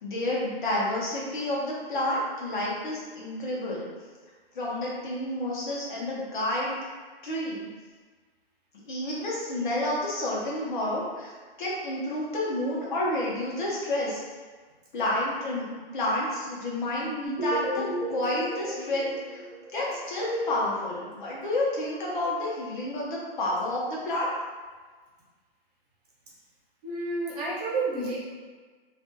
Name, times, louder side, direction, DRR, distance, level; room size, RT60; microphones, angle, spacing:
voice 1, 0.0-3.9 4.5-6.8 7.2-7.6 8.9-11.3 11.6-14.2 14.9-15.7 15.9-17.8 18.1-19.4 19.7-24.3, left 1 dB, 55° left, -5 dB, 0.8 m, -30 dB
sound 1, 17.3-20.2, equal, 15° right, 0.3 m, -33 dB
voice 2, 26.8-28.2, right 3 dB, 40° right, -7 dB, 0.8 m, -30 dB
2.5 x 2.3 x 2.6 m, 1.4 s
hypercardioid pair, 170°, 30 cm